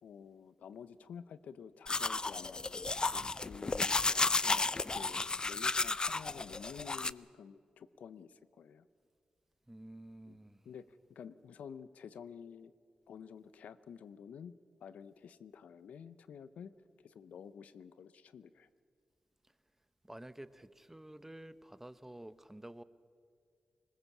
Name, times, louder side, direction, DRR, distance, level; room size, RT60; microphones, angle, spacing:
voice 1, 0.0-8.9 10.3-10.4 10.6-12.7 13.1-14.5 14.8-16.7 17.0-18.7, left 7 dB, 85° left, 15 dB, 0.6 m, -51 dB
sound 1, 1.9-7.1, left 3 dB, 35° left, 0.5 m, -33 dB
voice 2, 9.7-10.7 20.0-22.8, right 1 dB, 15° right, 14 dB, 0.9 m, -50 dB
20.5 x 20.0 x 7.1 m, 2.2 s
cardioid pair, 50°, 2 cm